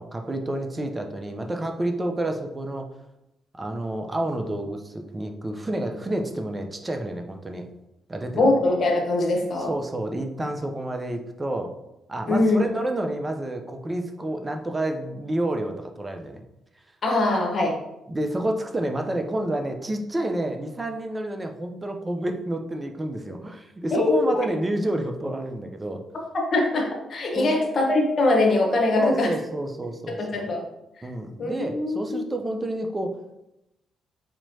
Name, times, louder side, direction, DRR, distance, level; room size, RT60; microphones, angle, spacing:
voice 1, 0.0-2.9 3.5-7.7 8.1-8.6 9.7-11.7 12.1-16.4 18.1-26.0 27.3-27.7 29.0-30.5 31.0-33.2, right 1 dB, 25° right, 4 dB, 0.7 m, -29 dB
voice 2, 8.3-9.7 12.3-12.6 17.0-17.8 23.9-24.3 26.5-29.3 30.2-30.6 31.0-31.1 31.4-32.2, left 2 dB, 55° left, 0 dB, 1.1 m, -22 dB
4.4 x 3.0 x 2.8 m, 0.88 s
hypercardioid pair, 45°, 0 cm